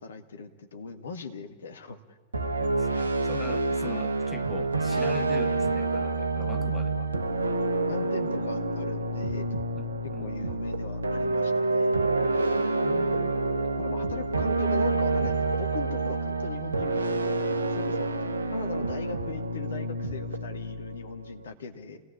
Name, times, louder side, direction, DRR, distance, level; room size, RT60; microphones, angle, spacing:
voice 1, 0.0-2.2 6.5-6.8 7.9-9.5 10.2-12.1 13.8-18.1 18.5-22.0, left 5 dB, 70° left, 6 dB, 1.9 m, -40 dB
sound 1, 2.3-21.5, right 2 dB, 75° right, 1.2 m, -28 dB
voice 2, 2.6-7.1 9.7-10.3, left 4 dB, 15° left, 10 dB, 1.1 m, -42 dB
28.0 x 18.0 x 9.9 m, 1.5 s
figure-of-eight pair, 90°, 0 cm